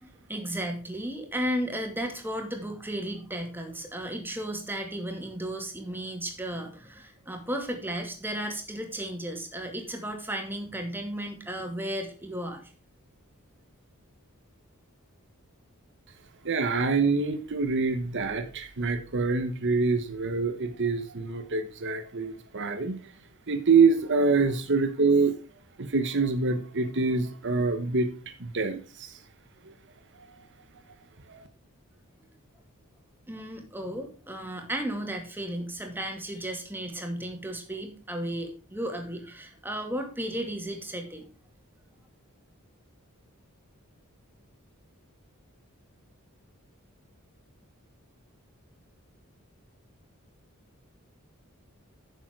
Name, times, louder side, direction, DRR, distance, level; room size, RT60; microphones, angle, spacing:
voice 1, 0.0-12.6 33.3-41.3, right 1 dB, 10° right, 3 dB, 2.3 m, -34 dB
voice 2, 16.4-23.0 23.5-25.3 25.8-28.1 28.4-29.2 29.6-29.7 31.3-31.4, right 4 dB, 55° right, 8 dB, 1.1 m, -25 dB
10.0 x 7.1 x 4.6 m, 0.36 s
head